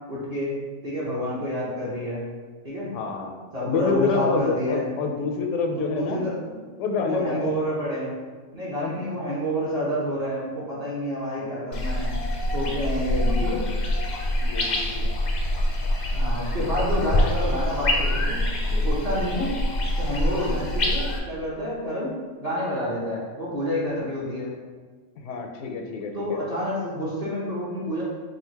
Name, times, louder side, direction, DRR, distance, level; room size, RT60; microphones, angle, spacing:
voice 1, 0.1-2.2 2.6-2.9 3.5-4.9 5.7-6.6 7.0-8.1 8.5-12.1 12.5-13.6 16.1-18.4 18.7-19.5 20.0-22.1 22.4-24.5 26.1-28.0, equal, 35° right, -8 dB, 1.0 m, -28 dB
voice 2, 2.9-3.3 3.6-6.2 6.8-7.6 8.8-9.0 14.4-15.1 20.4-20.7 25.2-26.4, left 4 dB, 80° left, 3 dB, 0.9 m, -28 dB
sound 1, 11.7-21.2, left 1 dB, 55° left, 0.5 m, -25 dB
3.8 x 2.4 x 4.4 m, 1.5 s
omnidirectional pair, 1.2 m